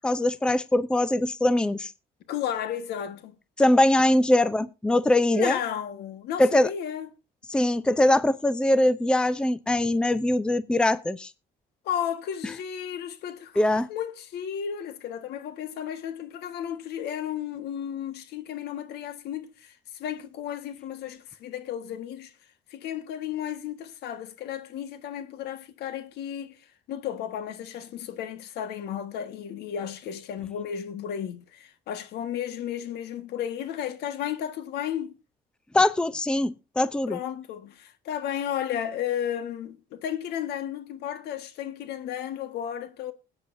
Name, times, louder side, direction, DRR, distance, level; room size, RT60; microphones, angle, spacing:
voice 1, 0.0-1.9 3.6-5.6 6.4-6.7 7.5-11.3 13.6-13.9 35.7-37.2, left 1 dB, 5° left, 0.5 m, -22 dB
voice 2, 2.3-3.3 5.3-7.1 11.8-22.3 22.7-26.6 26.9-35.1 37.1-43.1, left 9 dB, 75° left, 1.5 m, -33 dB
20.5 x 8.9 x 2.6 m
cardioid pair, 110°, 17 cm